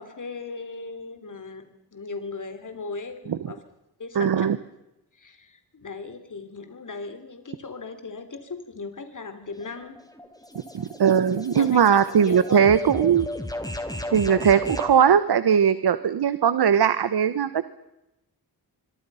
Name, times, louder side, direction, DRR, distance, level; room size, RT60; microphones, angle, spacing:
voice 1, 0.0-3.6 4.0-4.5 5.1-10.0 11.6-12.0 12.2-12.7, left 4 dB, 50° left, 8 dB, 3.5 m, -37 dB
voice 2, 4.1-4.6 10.7-13.3 14.1-17.5, right 8 dB, 80° right, 14 dB, 1.2 m, -19 dB
sound 1, 9.5-15.0, left 1 dB, 10° left, 3.9 m, -35 dB
25.5 x 24.0 x 5.7 m, 0.91 s
wide cardioid pair, 85°, 39 cm